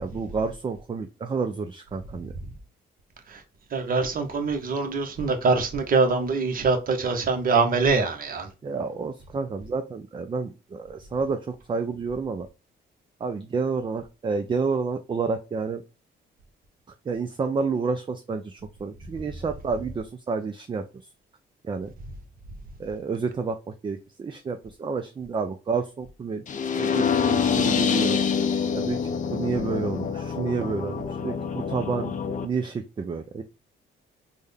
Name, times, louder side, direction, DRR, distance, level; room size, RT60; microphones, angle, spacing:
voice 1, 0.0-2.3 8.6-12.5 13.2-15.8 17.1-20.8 21.6-21.9 22.8-26.4 26.7-28.2 28.7-29.0 29.3-32.1 32.4-33.4, right 4 dB, 25° right, 0.4 m, -30 dB
voice 2, 3.7-8.5, right 4 dB, 45° right, 0.9 m, -24 dB
sound 1, 26.5-32.5, left 6 dB, 40° left, 0.5 m, -26 dB
3.6 x 2.1 x 3.3 m
cardioid pair, 90°, 20 cm